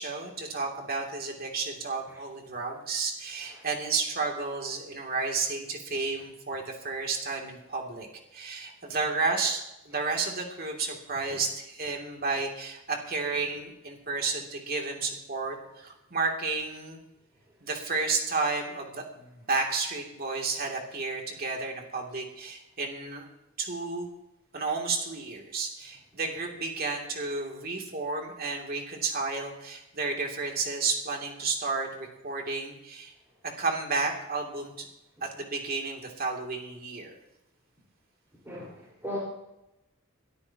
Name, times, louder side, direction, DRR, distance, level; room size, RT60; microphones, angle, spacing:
voice 1, 0.0-8.1 8.3-17.0 17.6-23.2 23.6-24.1 24.5-33.1 33.4-34.9 35.2-37.2, right 4 dB, 50° right, 1 dB, 2.8 m, -32 dB
voice 2, 38.4-39.2, equal, 15° right, -8 dB, 4.6 m, -37 dB
22.5 x 13.5 x 2.9 m, 0.89 s
head